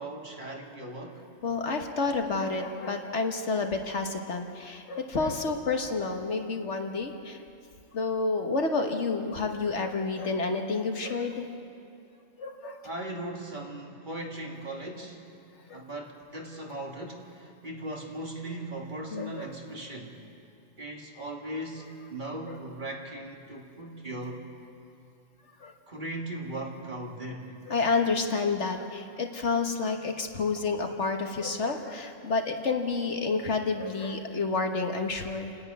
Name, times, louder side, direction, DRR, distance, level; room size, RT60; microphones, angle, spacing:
voice 1, 0.0-1.2 12.8-15.3 15.7-20.2 20.8-24.4 25.9-27.5, right 1 dB, 40° right, 0 dB, 2.0 m, -38 dB
voice 2, 1.4-7.4 7.9-11.5 12.4-12.8 15.7-15.8 19.1-19.5 25.6-25.7 27.7-35.6, left 4 dB, 60° left, 4 dB, 1.6 m, -29 dB
28.5 x 10.5 x 9.4 m, 2.5 s
omnidirectional pair, 1.3 m